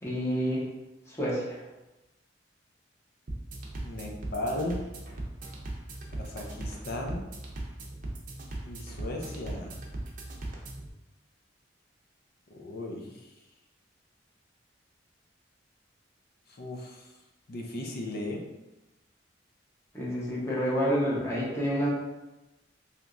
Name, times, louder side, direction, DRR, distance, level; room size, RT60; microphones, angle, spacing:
voice 1, 0.0-0.6 1.1-1.6 19.9-21.9, equal, 15° left, -6 dB, 0.9 m, -28 dB
sound 1, 3.3-10.9, right 1 dB, 45° right, 0.6 m, -39 dB
voice 2, 3.8-4.8 6.2-7.2 8.6-9.8 12.5-13.1 16.6-17.0 17.5-18.4, left 1 dB, 55° left, 1 dB, 0.6 m, -36 dB
3.4 x 2.8 x 2.5 m, 1.0 s
head